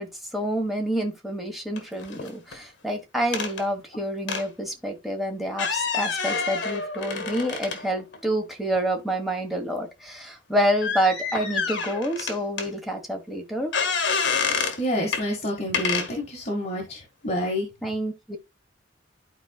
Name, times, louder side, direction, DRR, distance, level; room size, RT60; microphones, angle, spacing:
voice 1, 0.0-13.7 17.8-18.4, equal, ahead, 1.4 m, -28 dB
sound 1, 1.8-2.6 3.3-3.6 4.3-4.5 5.5-8.2 8.8-8.9 10.8-12.7 13.7-14.8 15.1-15.3 15.7-16.1, left 5 dB, 65° left, 1.4 m, -28 dB
voice 2, 14.8-17.7, equal, 35° left, 2.0 m, -28 dB
12.0 x 4.4 x 2.3 m
head